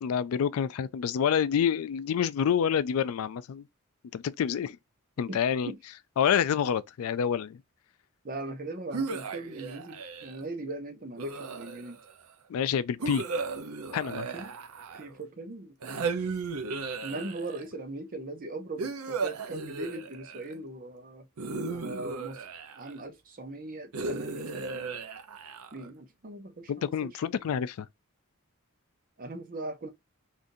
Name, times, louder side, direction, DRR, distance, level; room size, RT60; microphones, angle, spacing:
voice 1, 0.0-3.7 4.1-4.8 5.2-5.7 6.2-7.6 12.5-13.3 13.9-14.3 26.7-27.9, left 8 dB, 75° left, 0.3 m, -27 dB
voice 2, 8.2-12.0 13.0-13.1 14.1-14.5 14.9-16.1 17.0-21.3 21.7-22.4 22.8-24.8 25.7-27.1 29.2-29.9, right 2 dB, 40° right, 0.7 m, -40 dB
sound 1, 8.9-10.4 11.2-12.1 13.0-15.2 15.8-17.7 18.8-20.5 21.4-23.0 23.9-25.9, right 4 dB, 85° right, 0.7 m, -35 dB
3.8 x 2.5 x 2.6 m
head